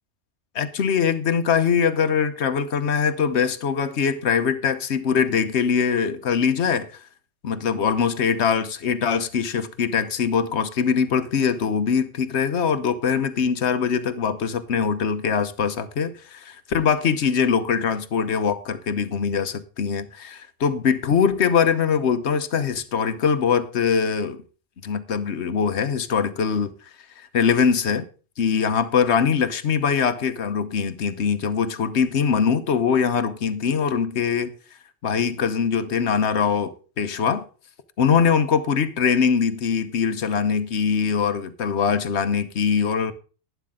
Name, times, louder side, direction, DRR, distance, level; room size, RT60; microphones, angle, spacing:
voice 1, 0.5-7.0 7.4-24.4 24.8-26.7 27.2-28.1 28.4-34.5 35.0-37.4 38.0-43.1, left 6 dB, 75° left, 1.2 m, -22 dB
12.0 x 10.5 x 3.7 m
omnidirectional pair, 1.1 m